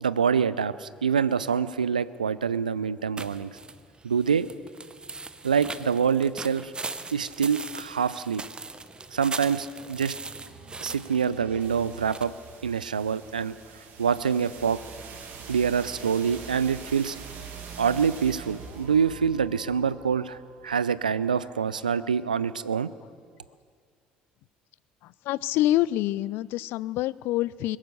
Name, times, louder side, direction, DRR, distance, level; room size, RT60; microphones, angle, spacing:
voice 1, 0.0-3.5 4.0-4.5 5.4-6.7 7.1-8.4 9.1-10.1 10.8-12.3 12.6-13.5 14.0-14.8 15.5-17.2 17.8-20.4 20.6-22.9, right 6 dB, 85° right, 17 dB, 0.3 m, -25 dB
sound 1, 3.2-12.2, right 3 dB, 20° right, 0.8 m, -40 dB
sound 2, 9.9-21.7, right 5 dB, 55° right, 2.1 m, -45 dB
voice 2, 25.0-27.8, left 15 dB, 60° left, 21 dB, 0.3 m, -26 dB
21.5 x 9.6 x 6.7 m, 2.1 s
figure-of-eight pair, 55°, 4 cm